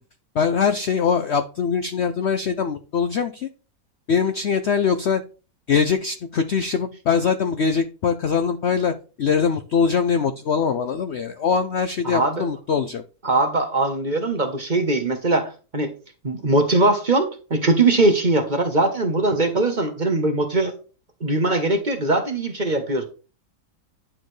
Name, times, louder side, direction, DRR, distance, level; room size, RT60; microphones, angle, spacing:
voice 1, 0.3-3.5 4.1-5.2 5.7-13.0, left 6 dB, 60° left, 9 dB, 0.7 m, -22 dB
voice 2, 12.0-12.5 13.2-15.9 16.2-20.7 21.2-23.0, right 2 dB, 30° right, 5 dB, 1.1 m, -21 dB
10.0 x 6.5 x 3.2 m, 0.34 s
omnidirectional pair, 1.7 m